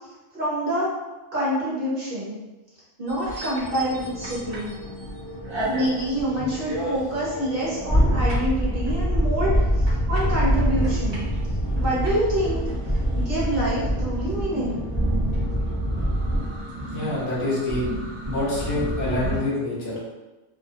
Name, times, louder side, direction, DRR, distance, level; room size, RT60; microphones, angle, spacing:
voice 1, 0.3-0.9 1.3-2.4 3.0-4.7 5.6-11.2 11.8-12.6 13.1-14.8, equal, 50° right, -8 dB, 1.0 m, -26 dB
sound 1, 3.1-5.1 5.4-19.4, equal, 30° right, 0.6 m, -25 dB
sound 2, 3.6-16.7, equal, 20° left, 0.6 m, -40 dB
voice 2, 16.9-17.9 18.3-20.1, left 2 dB, 55° left, -6 dB, 0.9 m, -26 dB
2.4 x 2.0 x 2.5 m, 1.1 s
omnidirectional pair, 1.3 m